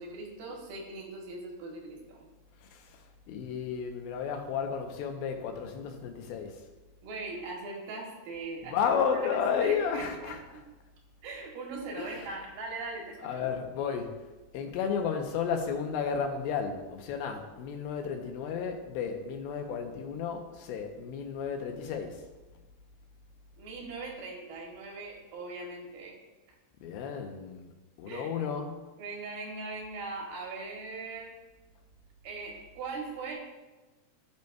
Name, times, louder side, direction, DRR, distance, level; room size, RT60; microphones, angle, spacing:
voice 1, 0.0-2.3 7.0-8.8 9.1-10.6 11.2-13.5 23.6-26.2 28.1-28.3 29.0-31.4 32.2-33.4, right 3 dB, 85° right, 0 dB, 3.1 m, -40 dB
voice 2, 2.6-3.0 3.3-6.6 8.6-10.4 12.0-12.3 13.2-14.1 14.5-22.2 26.8-27.7 28.0-28.9, left 6 dB, 85° left, 4 dB, 2.7 m, -32 dB
15.5 x 5.3 x 2.3 m, 1.2 s
omnidirectional pair, 4.2 m